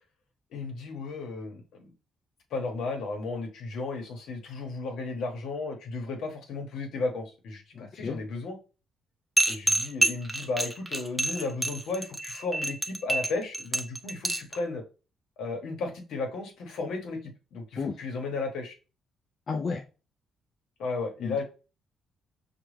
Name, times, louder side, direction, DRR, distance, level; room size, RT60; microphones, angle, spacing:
voice 1, 0.5-1.6 2.5-8.6 9.5-14.8 15.4-18.8 20.8-21.4, left 3 dB, 80° left, 3 dB, 1.1 m, -34 dB
voice 2, 7.8-8.2 17.8-17.9 19.5-19.8 21.2-21.4, left 5 dB, 50° left, 3 dB, 0.5 m, -32 dB
sound 1, 9.4-14.6, right 1 dB, 5° right, 0.6 m, -27 dB
5.9 x 2.3 x 3.2 m, 0.34 s
cardioid pair, 90°, 0 cm